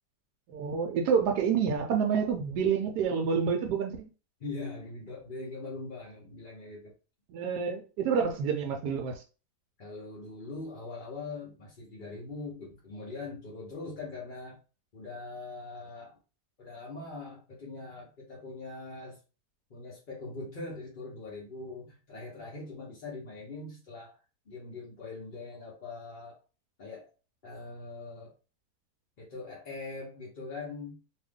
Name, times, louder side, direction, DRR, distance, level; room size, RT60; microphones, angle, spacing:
voice 1, 0.5-4.1 7.3-9.2, right 6 dB, 80° right, 1.1 m, -28 dB
voice 2, 4.4-6.9 9.8-14.6 14.9-16.2 16.6-19.2 19.7-24.2 24.5-26.4 26.8-27.1 27.4-28.3 29.2-31.0, left 3 dB, 40° left, 0.8 m, -42 dB
2.8 x 2.5 x 3.5 m
omnidirectional pair, 1.8 m